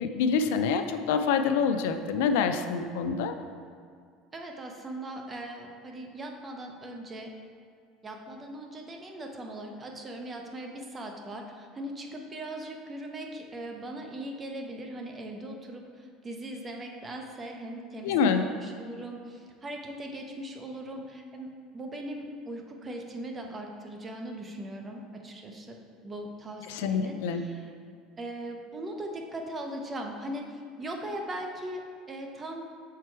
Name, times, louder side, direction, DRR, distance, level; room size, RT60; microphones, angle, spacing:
voice 1, 0.0-3.3 18.0-18.5 26.7-27.4, left 6 dB, 85° left, 8 dB, 0.4 m, -26 dB
voice 2, 4.3-7.3 8.0-21.5 21.7-27.7 28.2-32.6, right 1 dB, 20° right, 2 dB, 0.8 m, -39 dB
6.6 x 4.6 x 4.6 m, 2.2 s
cardioid pair, 140°, 0 cm